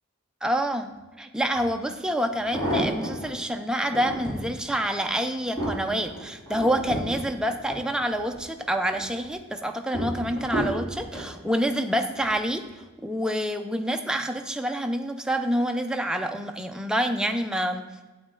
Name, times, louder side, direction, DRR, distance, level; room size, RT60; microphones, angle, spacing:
voice 1, 0.4-12.6 13.0-18.1, equal, 5° right, 5 dB, 0.5 m, -27 dB
sound 1, 1.5-1.6 2.3-3.3 3.8-4.5 5.0-8.4 8.8-9.3 9.9-11.3 12.1-12.4 12.7-12.8, equal, 20° left, 3.0 m, -32 dB
8.5 x 8.0 x 3.8 m, 1.2 s
head